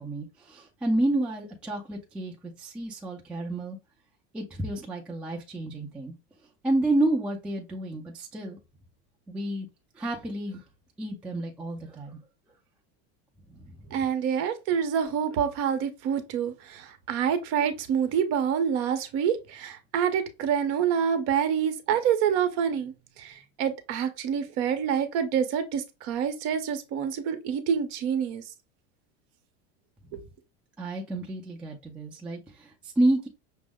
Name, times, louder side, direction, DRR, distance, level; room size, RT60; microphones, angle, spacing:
voice 1, 0.0-2.3 2.6-3.8 4.3-6.1 6.6-8.6 9.3-9.7 10.0-10.6 11.0-12.2 13.5-14.0 30.8-33.3, right 1 dB, 5° right, 0.3 m, -30 dB
voice 2, 13.9-22.9 23.2-28.4 30.1-30.2, right 8 dB, 45° right, 0.7 m, -27 dB
6.0 x 2.0 x 3.5 m
supercardioid pair, 170°, 32 cm